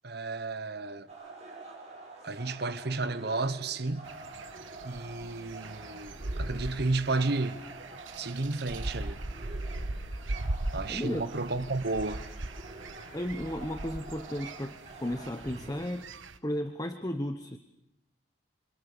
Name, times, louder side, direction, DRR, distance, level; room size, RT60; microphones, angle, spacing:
voice 1, 0.0-1.1 2.2-4.0 4.8-7.6 8.2-9.2 10.7-12.2, right 3 dB, 55° right, 1.1 m, -32 dB
sound 1, 1.1-15.9, right 2 dB, 35° right, 7.2 m, -48 dB
sound 2, 4.1-16.4, right 2 dB, 90° right, 1.3 m, -39 dB
voice 2, 10.9-11.3 13.1-16.1 16.4-17.6, equal, 20° left, 1.1 m, -34 dB
28.0 x 26.0 x 6.8 m
head